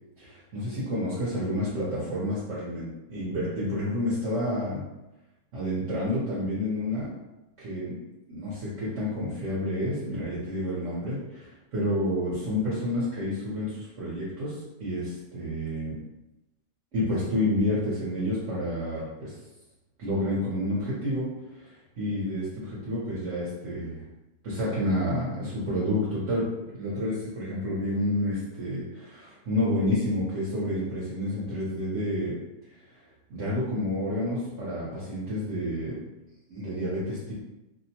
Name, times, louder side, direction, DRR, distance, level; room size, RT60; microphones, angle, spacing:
voice 1, 0.2-4.8 5.5-7.1 7.6-7.9 8.3-16.0 16.9-19.3 20.0-21.3 21.5-24.0 24.4-32.4 33.3-36.0 36.5-37.3, left 1 dB, 55° right, -8 dB, 0.9 m, -29 dB
2.8 x 2.0 x 2.7 m, 0.98 s
omnidirectional pair, 1.8 m